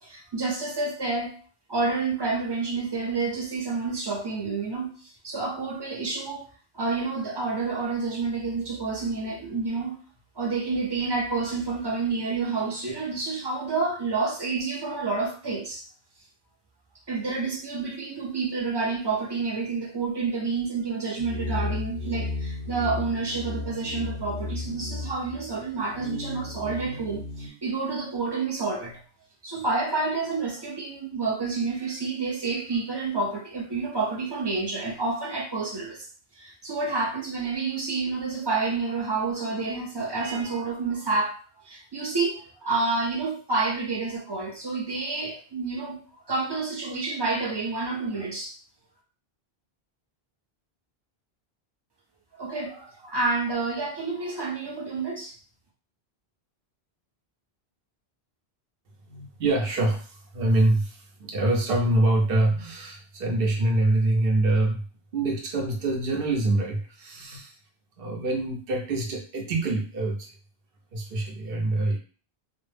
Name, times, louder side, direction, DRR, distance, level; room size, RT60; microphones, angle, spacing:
voice 1, 0.0-1.3 1.7-6.4 6.7-10.0 10.4-15.8 17.1-29.0 29.4-36.1 36.4-41.4 41.6-46.0 46.3-48.5 52.4-55.3, right 3 dB, 35° right, -1 dB, 0.4 m, -29 dB
sound 1, 21.2-27.5, left 2 dB, 25° left, 0.5 m, -34 dB
voice 2, 59.1-64.9 65.1-67.6 68.0-70.3 70.9-72.0, right 2 dB, 65° right, 2 dB, 0.8 m, -25 dB
2.1 x 2.0 x 3.2 m, 0.39 s
omnidirectional pair, 1.0 m